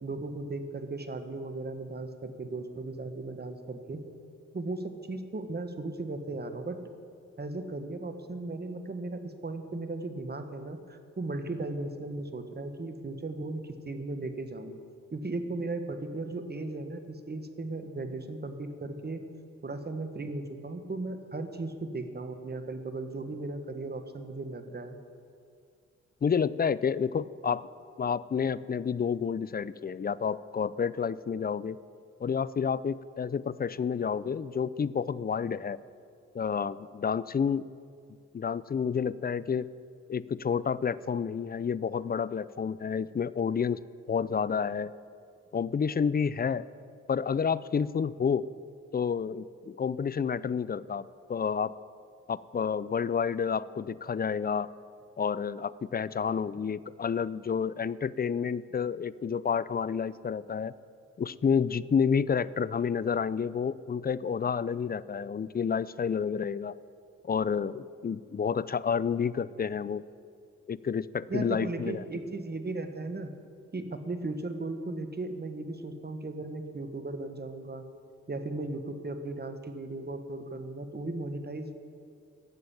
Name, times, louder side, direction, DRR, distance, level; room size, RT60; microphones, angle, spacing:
voice 1, 0.0-4.0 4.5-6.8 7.4-14.8 15.1-19.2 19.6-25.0 71.3-73.3 73.7-77.8 78.3-81.7, right 2 dB, 35° right, 8 dB, 1.5 m, -36 dB
voice 2, 26.2-27.6 28.0-31.8 32.2-35.8 36.3-37.7 38.3-39.7 40.1-43.8 44.1-44.9 45.5-46.6 47.1-48.4 48.9-51.7 52.3-54.7 55.2-60.7 61.2-66.7 67.2-70.0 70.7-72.0, left 6 dB, 30° left, 18 dB, 0.5 m, -29 dB
12.0 x 7.6 x 8.7 m, 2.3 s
supercardioid pair, 45°, 30 cm